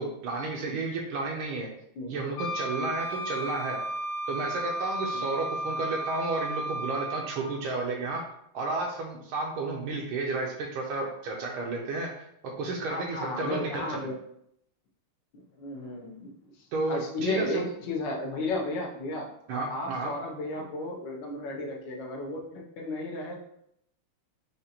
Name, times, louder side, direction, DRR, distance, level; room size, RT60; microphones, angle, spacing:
voice 1, 0.0-1.7 2.1-3.8 4.3-8.2 8.5-12.3 12.6-14.1 16.7-17.6 19.5-20.1, right 3 dB, 80° right, 0 dB, 1.4 m, -32 dB
Wind instrument woodwind instrument, 2.4-7.5, right 1 dB, 85° left, 1.5 m, -34 dB
voice 2, 12.9-14.2 15.3-19.3 19.7-23.4, left 2 dB, 70° left, 0 dB, 1.2 m, -34 dB
5.0 x 2.4 x 2.8 m, 0.74 s
omnidirectional pair, 2.4 m